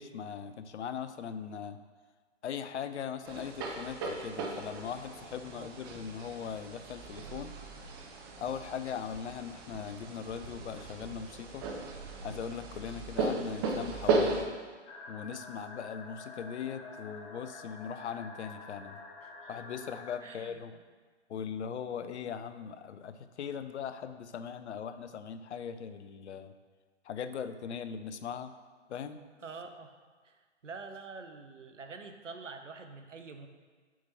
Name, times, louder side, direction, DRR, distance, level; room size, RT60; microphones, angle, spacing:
voice 1, 0.0-1.8 2.4-7.5 8.4-11.7 12.2-14.5 15.1-19.0 19.5-20.7 21.3-26.5 27.0-28.5 28.9-29.2, left 7 dB, 70° left, 11 dB, 0.5 m, -40 dB
sound 1, 3.2-14.4, right 3 dB, 20° right, 0.4 m, -36 dB
sound 2, 14.9-20.1, left 3 dB, 30° left, 0.7 m, -48 dB
voice 2, 20.2-20.6 29.4-29.9 30.2-33.5, right 4 dB, 85° right, 6 dB, 0.7 m, -46 dB
7.2 x 3.0 x 5.5 m, 1.5 s
figure-of-eight pair, 115°, 36 cm